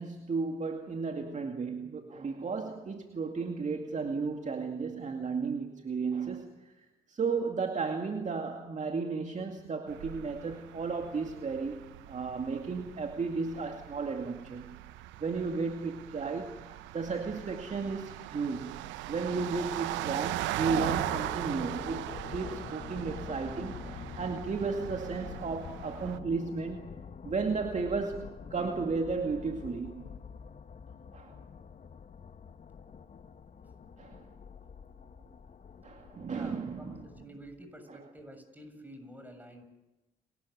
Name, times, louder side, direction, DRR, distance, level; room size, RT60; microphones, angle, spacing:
voice 1, 0.0-14.8 15.2-18.8 19.1-26.9 27.2-28.2 28.5-30.1 31.1-31.4 34.0-34.2 35.8-37.2 37.9-38.0, right 4 dB, 40° right, 4 dB, 2.3 m, -34 dB
sound 1, 9.9-26.2, right 16 dB, 75° right, 0.9 m, -39 dB
sound 2, 20.6-37.3, left 6 dB, 40° left, 1.4 m, -46 dB
voice 2, 36.3-39.6, right 1 dB, 10° right, 6 dB, 7.1 m, -49 dB
30.0 x 13.0 x 9.8 m, 1.0 s
hypercardioid pair, 55°, 20 cm